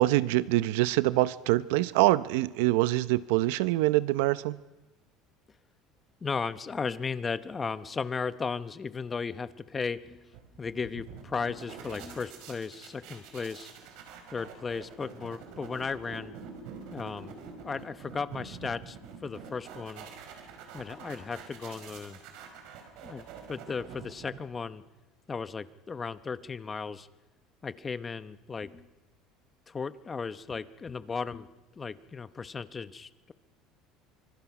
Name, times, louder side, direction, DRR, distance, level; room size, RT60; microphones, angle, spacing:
voice 1, 0.0-4.6, right 17 dB, 85° right, 17 dB, 0.7 m, -25 dB
voice 2, 6.2-10.3 10.6-13.7 14.3-16.3 16.9-17.3 17.6-19.0 19.2-20.1 20.7-22.2 23.0-24.8 25.3-27.1 27.6-28.8 29.7-31.5 31.8-33.3, left 5 dB, 20° left, 14 dB, 0.8 m, -35 dB
sound 1, 10.3-24.7, right 6 dB, 65° right, 4.9 m, -46 dB
25.5 x 25.0 x 6.0 m, 1.1 s
cardioid pair, 145°, 0 cm